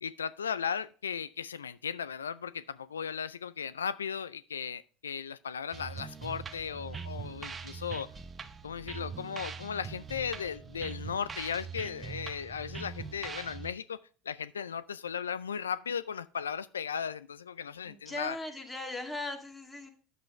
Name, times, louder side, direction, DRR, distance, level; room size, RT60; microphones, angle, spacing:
voice 1, 0.0-8.1 8.6-14.0 14.3-18.4, left 7 dB, 90° left, 0.3 m, -36 dB
sound 1, 5.7-13.7, right 5 dB, 25° right, 0.9 m, -42 dB
voice 2, 17.8-19.9, left 2 dB, 10° left, 2.2 m, -39 dB
9.2 x 7.6 x 3.1 m
hypercardioid pair, 80°, 0 cm